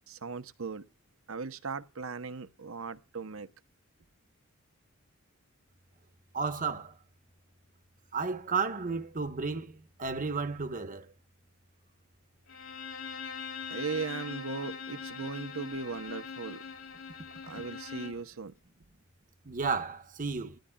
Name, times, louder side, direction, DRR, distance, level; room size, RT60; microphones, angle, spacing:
voice 1, 0.1-0.9 1.3-3.5 13.7-16.6 17.4-18.5, right 4 dB, 65° right, 0.9 m, -38 dB
voice 2, 6.3-6.9 8.1-11.1 19.4-20.6, right 4 dB, 40° right, 1.1 m, -33 dB
Bowed string instrument, 12.5-18.3, left 6 dB, 70° left, 3.5 m, -42 dB
20.5 x 14.0 x 2.3 m
head